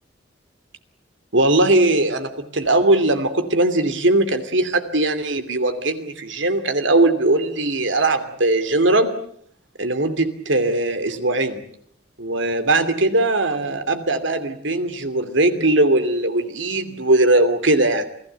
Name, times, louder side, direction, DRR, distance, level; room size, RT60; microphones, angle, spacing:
voice 1, 1.3-9.1 9.8-11.6 12.2-18.1, right 2 dB, 75° right, 9 dB, 2.8 m, -19 dB
28.5 x 18.0 x 8.1 m, 0.65 s
head